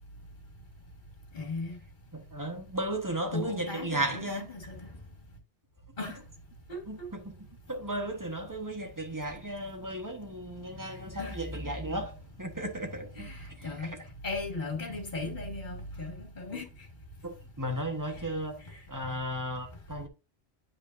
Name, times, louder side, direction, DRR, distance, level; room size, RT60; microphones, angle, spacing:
voice 1, 1.3-1.8 3.3-4.9 6.0-6.2 6.7-7.1 10.9-11.4 13.1-13.9 14.2-16.7 18.7-18.8, left 3 dB, 45° left, 2.0 m, -37 dB
voice 2, 2.1-4.5 6.9-7.3 7.7-14.0 16.5-16.6 17.2-18.6 18.9-20.1, right 1 dB, 15° right, 1.3 m, -35 dB
10.0 x 5.1 x 2.6 m
omnidirectional pair, 1.2 m